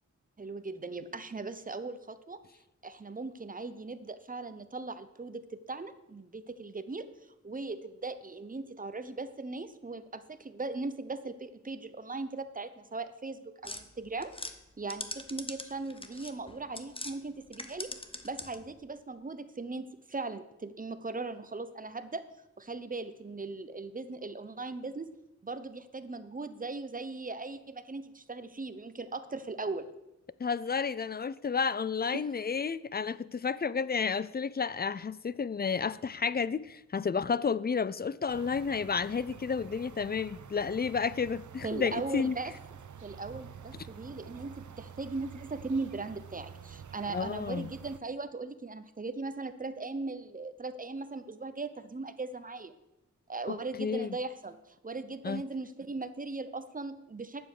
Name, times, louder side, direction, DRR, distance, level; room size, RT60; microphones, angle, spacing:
voice 1, 0.4-2.4 2.8-7.1 7.4-14.3 14.8-17.9 18.2-22.2 22.6-25.1 25.4-29.9 32.1-32.3 41.6-42.5 43.0-52.7 53.3-54.6 54.8-57.5, right 3 dB, 30° right, 0.8 m, -39 dB
sound 1, 13.6-17.2 17.5-18.7, left 2 dB, 20° left, 0.9 m, -42 dB
voice 2, 30.4-42.4 47.1-47.7 53.5-54.2 55.2-55.4, left 5 dB, 35° left, 0.4 m, -31 dB
sound 2, 38.3-48.0, right 7 dB, 85° right, 0.7 m, -48 dB
10.5 x 7.4 x 6.7 m
wide cardioid pair, 110°, 29 cm